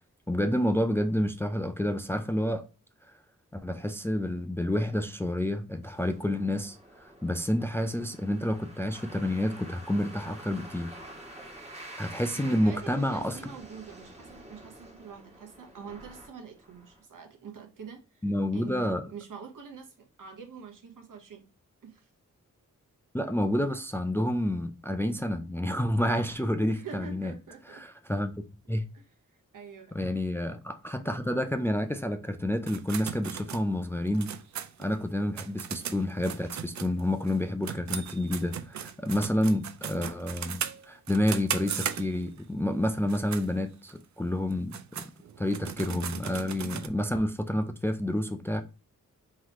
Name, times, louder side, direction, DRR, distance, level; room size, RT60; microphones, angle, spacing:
voice 1, 0.3-2.6 3.5-6.8 7.2-10.9 12.0-13.4 18.2-19.0 23.1-27.3 27.7-28.8 29.9-34.3 34.8-40.6 40.9-45.1 45.4-48.6, left 1 dB, 10° left, 0.3 m, -29 dB
sound 1, 5.8-17.0, right 1 dB, 20° right, 1.6 m, -48 dB
voice 2, 12.4-18.2 18.5-21.4 21.8-22.1 26.7-27.9 28.9-29.9, right 6 dB, 75° right, 1.1 m, -45 dB
sound 2, 32.7-37.4 37.6-42.4 43.0-43.5 43.9-44.0 44.5-46.9, right 8 dB, 60° right, 0.5 m, -37 dB
3.9 x 3.0 x 3.0 m
wide cardioid pair, 95°, 32 cm